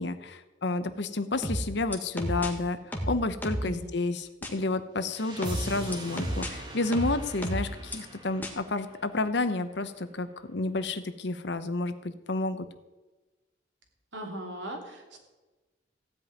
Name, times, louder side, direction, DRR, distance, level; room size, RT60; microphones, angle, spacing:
voice 1, 0.0-2.8 3.1-12.7, left 2 dB, 65° left, 11 dB, 0.9 m, -30 dB
sound 1, 1.4-2.5 2.9-3.7 4.4-4.5 5.4-6.5 6.9-8.0 8.4-8.5, equal, 10° left, 1.5 m, -31 dB
voice 2, 3.6-3.9 14.1-15.2, right 1 dB, 70° right, 2 dB, 2.8 m, -39 dB
sound 2, 5.0-10.0, right 1 dB, 20° right, 1.8 m, -43 dB
15.5 x 5.3 x 9.5 m, 1.1 s
head